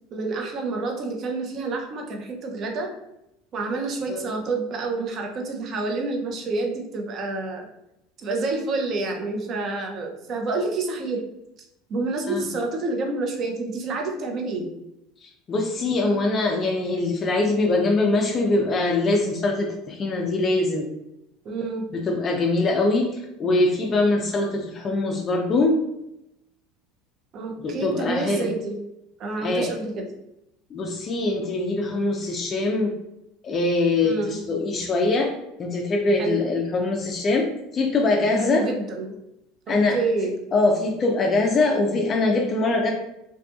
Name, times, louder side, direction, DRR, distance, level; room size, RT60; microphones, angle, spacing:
voice 1, 0.1-2.9 3.5-7.7 8.2-11.2 11.9-14.7 21.4-21.9 27.3-28.8 29.2-30.1 34.0-34.4 36.2-36.4 38.3-39.2 39.7-40.3, right 3 dB, 40° right, 2 dB, 0.5 m, -28 dB
voice 2, 15.2-20.9 21.9-25.8 27.6-28.5 29.4-29.7 30.7-32.9 33.4-35.3 35.6-37.5 37.7-38.7 39.7-40.0 40.5-42.9, left 2 dB, 30° left, 1 dB, 0.3 m, -23 dB
2.6 x 2.5 x 2.3 m, 0.86 s
supercardioid pair, 135°, 0 cm